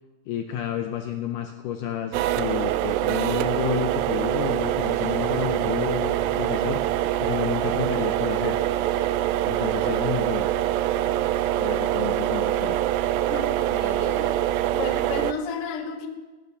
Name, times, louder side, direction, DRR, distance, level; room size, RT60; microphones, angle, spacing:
voice 1, 0.3-8.6 9.4-10.5 11.6-12.8, left 9 dB, 75° left, 6 dB, 2.0 m, -31 dB
sound 1, 2.1-15.3, right 13 dB, 85° right, 2.3 m, -24 dB
sound 2, 3.7-8.7, right 1 dB, 5° right, 5.7 m, -45 dB
voice 2, 13.3-14.4 14.7-16.1, left 5 dB, 55° left, 5 dB, 1.7 m, -33 dB
16.5 x 9.4 x 6.8 m, 1.3 s
omnidirectional pair, 4.2 m